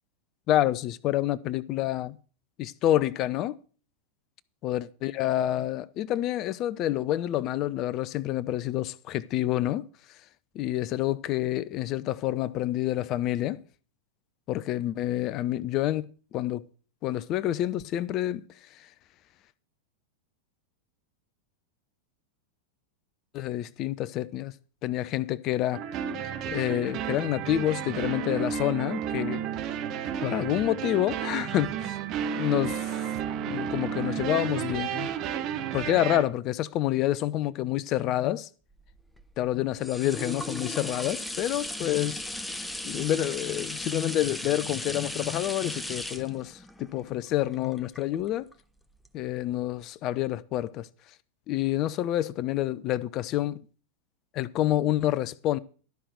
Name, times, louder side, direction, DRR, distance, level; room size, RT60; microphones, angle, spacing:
voice 1, 0.5-2.2 2.6-3.6 4.6-9.8 10.5-13.6 14.5-16.1 16.3-16.6 17.0-18.4 23.3-24.5 24.8-25.8 26.5-29.4 30.2-32.0 32.4-32.9 33.4-35.1 35.7-38.5 39.4-42.2 42.8-48.5 49.1-50.9 51.5-53.6 54.3-55.6, left 13 dB, 35° left, 0.6 m, -28 dB
sound 1, 25.7-36.2, right 8 dB, 40° right, 1.4 m, -32 dB
sound 2, 38.8-48.5 49.0-49.1, left 1 dB, 5° left, 0.9 m, -37 dB
12.5 x 5.9 x 7.9 m
figure-of-eight pair, 90°, 0 cm